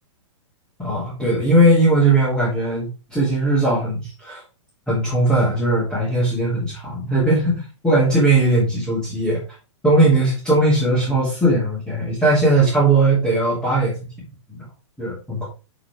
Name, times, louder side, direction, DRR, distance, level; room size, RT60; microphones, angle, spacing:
voice 1, 0.8-4.4 4.9-9.4 9.8-13.9 14.5-14.6 15.0-15.5, right 2 dB, 5° left, -9 dB, 3.2 m, -18 dB
7.7 x 6.3 x 3.6 m, 0.31 s
hypercardioid pair, 180°, 16 cm